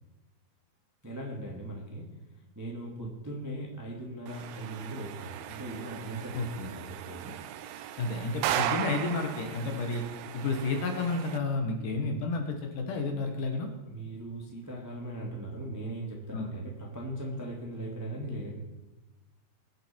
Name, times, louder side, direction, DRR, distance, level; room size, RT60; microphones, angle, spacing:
voice 1, 1.0-2.1 2.5-7.3 11.8-11.9 13.9-18.6, right 1 dB, 10° right, -2 dB, 1.0 m, -39 dB
sound 1, 4.3-11.4, right 11 dB, 90° right, 2.7 m, -37 dB
voice 2, 6.3-6.7 8.0-10.0 10.3-13.7 16.3-16.5, left 3 dB, 65° left, 4 dB, 2.6 m, -31 dB
22.0 x 7.4 x 4.5 m, 1.1 s
omnidirectional pair, 4.5 m